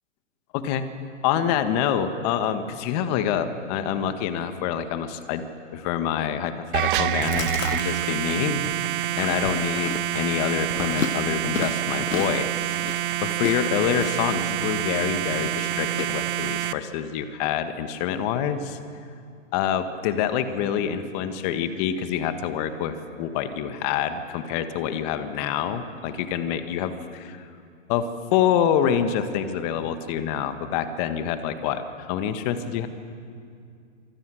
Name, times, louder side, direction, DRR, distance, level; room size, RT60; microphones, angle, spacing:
voice 1, 0.5-0.9 1.2-5.4 5.7-18.8 19.5-27.4 27.9-32.9, left 9 dB, 30° left, 9 dB, 1.7 m, -26 dB
sound 1, 6.7-16.7, right 12 dB, 40° right, 0.9 m, -27 dB
Chewing mastication, 7.0-16.0, left 6 dB, 85° left, 1.4 m, -35 dB
27.0 x 25.0 x 6.4 m, 2.4 s
hypercardioid pair, 135°, 39 cm